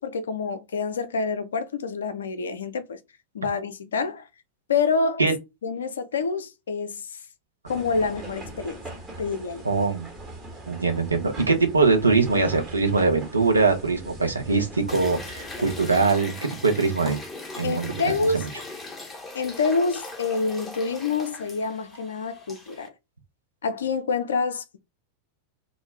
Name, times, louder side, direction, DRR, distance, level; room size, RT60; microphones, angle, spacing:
voice 1, 0.0-3.0 3.3-4.3 4.7-5.2 5.6-7.1 7.7-8.8 9.2-9.6 17.6-18.5 19.3-22.9 23.6-24.8, left 4 dB, 65° left, 0.4 m, -27 dB
sound 1, 7.7-16.0, right 2 dB, 20° right, 1.0 m, -41 dB
voice 2, 9.6-10.1 10.7-16.3 16.6-17.2 17.6-17.9 18.3-18.4, right 4 dB, 80° right, 0.6 m, -22 dB
sound 2, 14.9-22.9, left 2 dB, 15° left, 0.6 m, -39 dB
2.3 x 2.0 x 3.2 m
figure-of-eight pair, 90°, 0 cm